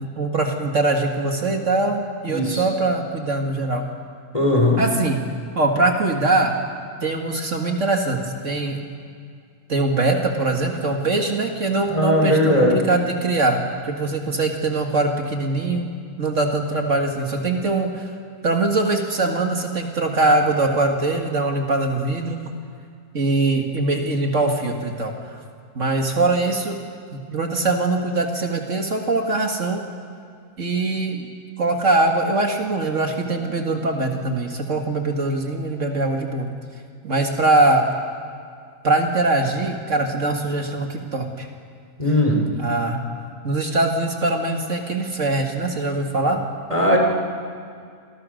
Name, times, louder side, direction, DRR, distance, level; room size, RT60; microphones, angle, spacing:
voice 1, 0.0-3.8 4.8-5.2 5.5-6.5 7.0-8.8 9.7-13.6 13.8-15.9 16.2-18.1 18.4-22.4 23.1-25.1 25.8-26.7 27.1-29.9 30.6-31.3 31.6-36.5 37.0-37.8 38.8-41.5 42.6-43.0 43.4-46.4, right 2 dB, 60° right, 2 dB, 2.3 m, -22 dB
voice 2, 2.3-2.6 4.3-4.8 11.9-12.8 42.0-42.4 46.7-47.0, left 1 dB, 25° left, 0 dB, 4.5 m, -18 dB
27.5 x 23.5 x 6.5 m, 2.2 s
omnidirectional pair, 1.5 m